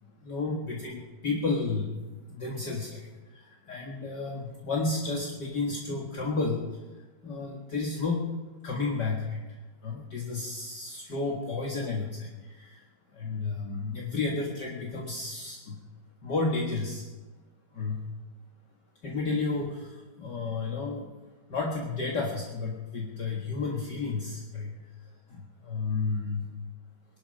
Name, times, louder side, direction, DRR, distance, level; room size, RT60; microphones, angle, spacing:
voice 1, 0.2-1.9 2.3-6.6 7.2-8.3 8.6-9.4 9.8-12.8 13.1-15.8 16.2-17.0 17.7-18.0 19.0-21.1 21.5-24.8 25.3-26.5, left 3 dB, 45° left, -2 dB, 1.5 m, -32 dB
21.5 x 11.5 x 5.4 m, 1.2 s
omnidirectional pair, 4.1 m